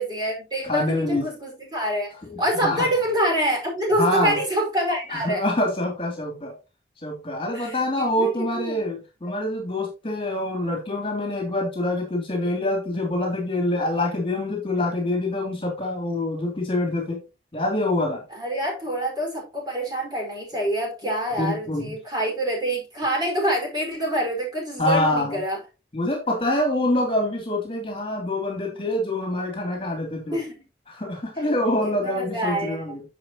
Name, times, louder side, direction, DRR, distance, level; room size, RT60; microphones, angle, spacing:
voice 1, 0.0-2.1 2.4-5.4 7.5-8.8 9.3-9.4 18.3-25.6 30.3-30.6 31.8-32.8, right 1 dB, 25° right, 4.8 m, -26 dB
voice 2, 0.6-1.3 2.2-2.9 4.0-4.4 5.1-6.5 7.0-17.2 17.5-18.2 21.4-22.0 24.8-25.4 25.9-30.4 30.9-33.0, left 1 dB, 30° left, 2.8 m, -25 dB
10.5 x 6.8 x 2.9 m
head